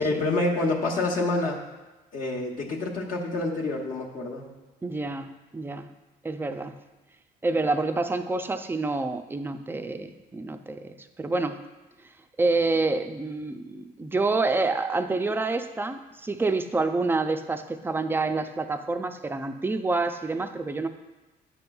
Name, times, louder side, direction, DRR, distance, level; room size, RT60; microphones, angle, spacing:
voice 1, 0.0-1.6 2.1-4.5, left 2 dB, 55° left, -2 dB, 1.0 m, -27 dB
voice 2, 4.8-5.9 6.2-6.7 7.4-11.6 12.4-20.9, right 3 dB, 15° right, 8 dB, 0.4 m, -28 dB
9.8 x 5.3 x 2.3 m, 1.1 s
cardioid pair, 110°, 17 cm